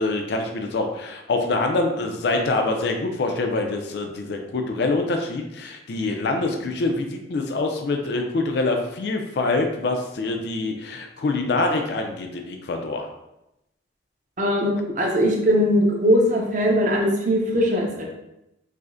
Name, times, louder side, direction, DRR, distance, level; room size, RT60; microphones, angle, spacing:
voice 1, 0.0-13.1, left 3 dB, 60° left, 4 dB, 0.3 m, -25 dB
voice 2, 14.4-18.1, equal, 40° right, -1 dB, 0.6 m, -20 dB
4.8 x 2.0 x 2.5 m, 0.89 s
head